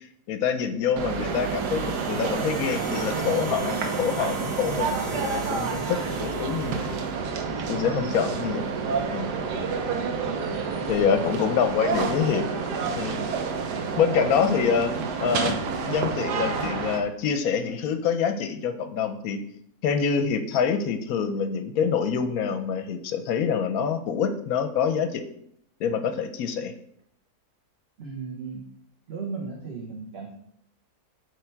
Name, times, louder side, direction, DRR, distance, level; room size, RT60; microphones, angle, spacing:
voice 1, 0.3-6.9 7.7-8.6 9.1-9.3 10.9-12.5 13.0-13.2 14.0-14.9 15.2-15.6 15.9-19.4 19.8-25.2 25.8-26.7, left 7 dB, 70° left, 9 dB, 1.0 m, -26 dB
sound 1, 1.0-7.1, right 2 dB, 20° right, 1.0 m, -42 dB
sound 2, 1.0-17.0, right 5 dB, 85° right, 1.4 m, -29 dB
voice 2, 7.9-8.2 10.9-11.2 28.0-28.7 29.1-30.3, right 5 dB, 45° right, -1 dB, 1.1 m, -36 dB
7.2 x 3.5 x 4.5 m, 0.69 s
omnidirectional pair, 1.7 m